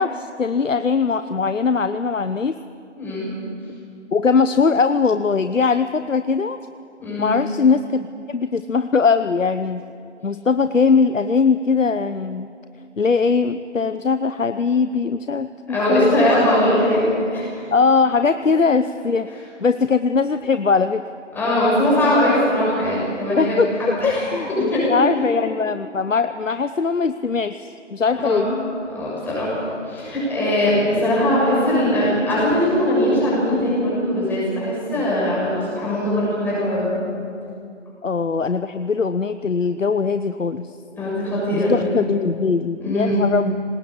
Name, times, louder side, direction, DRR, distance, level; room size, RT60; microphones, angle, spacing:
voice 1, 0.0-2.5 4.1-6.6 7.2-9.8 10.2-12.5 13.0-16.5 17.7-19.3 19.6-21.0 23.4-28.5 38.0-40.7 41.5-43.5, left 5 dB, 85° left, 11 dB, 0.9 m, -20 dB
voice 2, 3.0-3.3 7.0-7.3 15.7-17.6 18.5-18.7 21.4-23.7 24.0-24.9 28.2-36.9 40.9-41.9 42.7-43.3, left 1 dB, 5° left, -7 dB, 6.8 m, -21 dB
25.5 x 20.0 x 8.6 m, 2.4 s
figure-of-eight pair, 155°, 37 cm